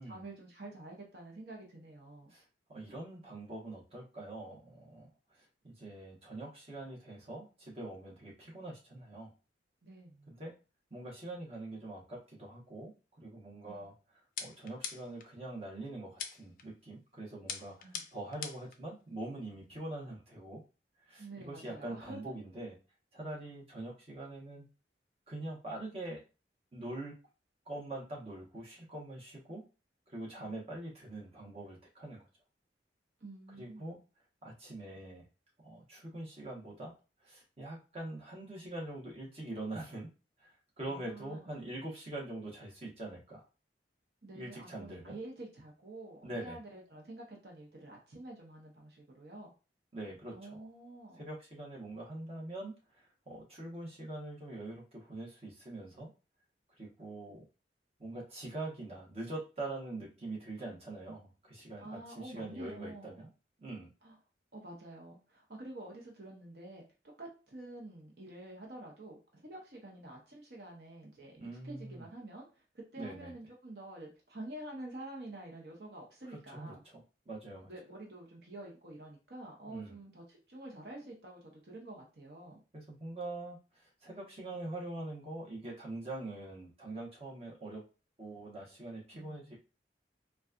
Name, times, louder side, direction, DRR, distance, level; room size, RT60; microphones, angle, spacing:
voice 1, 0.0-2.3 9.8-10.3 13.6-13.9 17.8-18.0 21.2-22.3 30.4-30.5 33.2-34.0 40.8-41.6 44.2-49.5 50.3-51.2 61.8-63.3 64.0-64.1 64.5-66.8 67.2-71.4 71.6-76.8 77.6-82.6 89.1-89.5, right 2 dB, 65° right, -1 dB, 0.9 m, -48 dB
voice 2, 2.7-9.3 10.3-10.5 10.9-12.9 13.2-13.9 14.4-20.6 21.0-22.8 23.1-24.7 25.3-26.2 26.7-27.1 27.7-29.6 30.1-32.2 33.5-34.0 34.4-35.2 35.6-36.9 37.2-40.1 40.4-43.4 44.3-45.1 46.2-46.6 49.9-50.7 51.2-56.1 56.8-57.4 58.0-63.3 63.6-63.9 71.4-72.1 73.0-73.3 76.3-77.7 79.7-80.0 82.7-87.8 88.2-89.5, right 2 dB, 35° right, -3 dB, 1.1 m, -44 dB
sound 1, 14.4-15.3 16.2-16.6 17.5-18.8, left 7 dB, 50° left, 0.4 m, -42 dB
4.0 x 2.3 x 2.4 m, 0.32 s
head